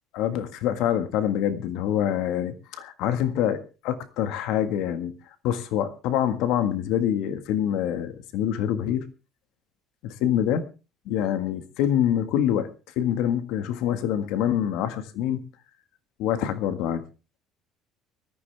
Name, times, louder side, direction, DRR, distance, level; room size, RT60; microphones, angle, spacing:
voice 1, 0.1-5.1 5.4-9.0 10.0-10.6 11.0-12.7 12.9-15.4 16.2-17.0, left 10 dB, 75° left, 10 dB, 1.7 m, -25 dB
19.5 x 14.0 x 3.5 m, 0.32 s
cardioid pair, 140°, 0 cm